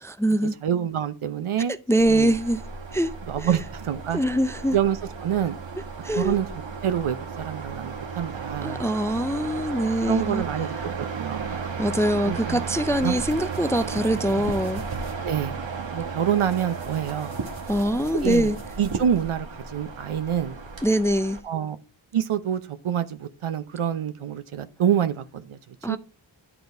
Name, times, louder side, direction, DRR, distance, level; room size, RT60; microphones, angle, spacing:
voice 1, 0.0-0.6 1.9-2.6 2.9-3.1 3.4-3.5 4.1-4.8 6.0-6.4 8.6-10.4 11.5-14.8 17.7-18.6 20.8-21.4 25.8-26.0, right 1 dB, 5° left, 0.3 m, -23 dB
voice 2, 0.6-1.8 2.1-2.3 3.3-4.2 4.7-5.6 6.2-6.5 6.8-8.8 10.0-11.6 12.3-12.6 13.0-13.2 15.2-15.6 15.9-17.4 18.2-20.6 21.4-21.8 22.1-26.0, right 9 dB, 80° right, 0.8 m, -27 dB
sound 1, 2.0-21.4, right 5 dB, 65° right, 1.2 m, -34 dB
sound 2, 12.7-15.2 16.2-19.3, right 2 dB, 50° right, 2.1 m, -49 dB
11.0 x 4.0 x 3.4 m
wide cardioid pair, 65°, 49 cm